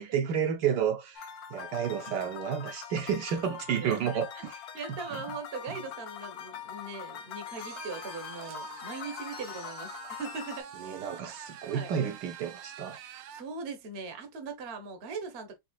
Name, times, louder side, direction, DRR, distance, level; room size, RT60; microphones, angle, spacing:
voice 1, 0.0-4.6 4.9-5.2 10.8-13.0, right 8 dB, 70° right, 1.2 m, -31 dB
sound 1, 1.1-10.6, left 9 dB, 65° left, 1.0 m, -43 dB
voice 2, 3.8-4.2 4.7-10.7 11.7-11.9 13.3-15.6, right 4 dB, 45° right, 0.9 m, -40 dB
sound 2, 7.6-13.5, right 8 dB, 85° right, 1.3 m, -46 dB
4.2 x 3.3 x 2.3 m
omnidirectional pair, 2.0 m